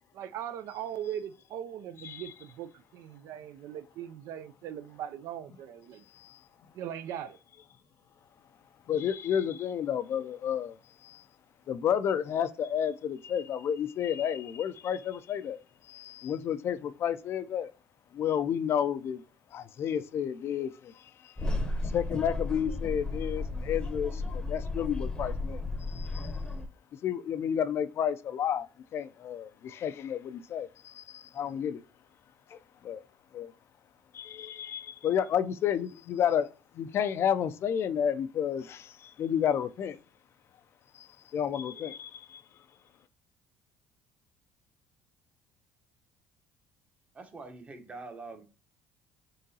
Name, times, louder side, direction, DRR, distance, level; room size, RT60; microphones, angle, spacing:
voice 1, 0.1-6.0 6.7-7.4, right 10 dB, 65° right, 0.3 m, -39 dB
voice 2, 8.9-10.8 11.0-11.2 11.7-15.6 15.9-17.7 18.1-19.2 19.5-20.9 21.9-25.6 25.9-26.3 27.0-28.7 28.9-31.8 32.5-32.6 32.8-33.0 33.3-33.5 34.1-36.5 36.8-40.0 41.0-42.4, left 9 dB, 50° left, 0.4 m, -31 dB
sound 1, 21.4-26.7, left 2 dB, 15° left, 0.7 m, -34 dB
voice 3, 47.1-48.4, right 3 dB, 25° right, 0.9 m, -44 dB
3.7 x 3.7 x 2.7 m
supercardioid pair, 90°, 5 cm